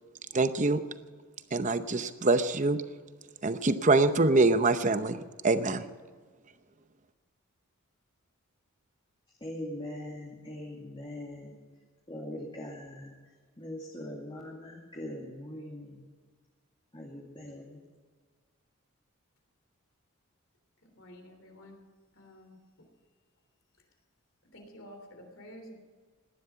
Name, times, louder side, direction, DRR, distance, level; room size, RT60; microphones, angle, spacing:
voice 1, 0.3-0.8 1.5-2.8 3.4-5.8, right 3 dB, 35° right, 11 dB, 0.7 m, -25 dB
voice 2, 9.4-11.6 12.1-13.1 13.6-16.0 16.9-17.8, left 1 dB, 25° left, -3 dB, 2.2 m, -41 dB
voice 3, 20.8-21.8 22.1-22.9 24.5-25.8, equal, 60° left, 4 dB, 3.3 m, -50 dB
17.5 x 12.0 x 5.8 m, 1.5 s
head